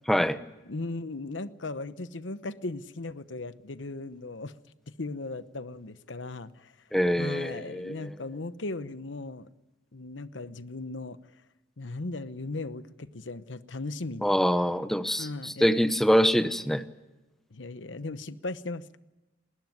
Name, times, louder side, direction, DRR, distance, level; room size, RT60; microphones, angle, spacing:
voice 1, 0.1-0.4 6.9-8.1 14.2-16.8, equal, ahead, 11 dB, 0.9 m, -25 dB
voice 2, 0.7-4.5 5.0-6.7 7.2-9.5 9.9-11.2 11.8-14.4 15.2-15.7 17.5-19.0, left 2 dB, 80° left, 13 dB, 1.0 m, -37 dB
20.5 x 20.0 x 9.5 m, 1.1 s
head